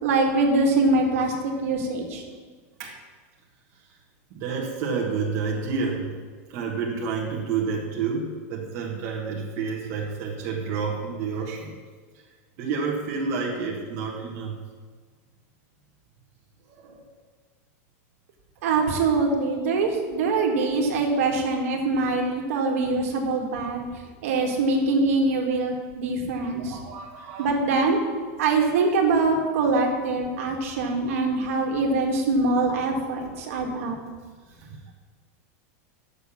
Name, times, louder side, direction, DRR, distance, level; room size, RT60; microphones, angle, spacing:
voice 1, 0.0-2.2 18.6-23.9 24.2-26.8 27.4-28.0 28.4-34.0, right 3 dB, 65° right, 1 dB, 1.8 m, -23 dB
voice 2, 4.3-6.1 6.5-11.7 12.6-14.6 16.8-17.0 26.6-27.6 34.6-34.8, right 5 dB, 35° right, -3 dB, 1.4 m, -29 dB
7.9 x 6.7 x 7.0 m, 1.5 s
supercardioid pair, 170°, 8 cm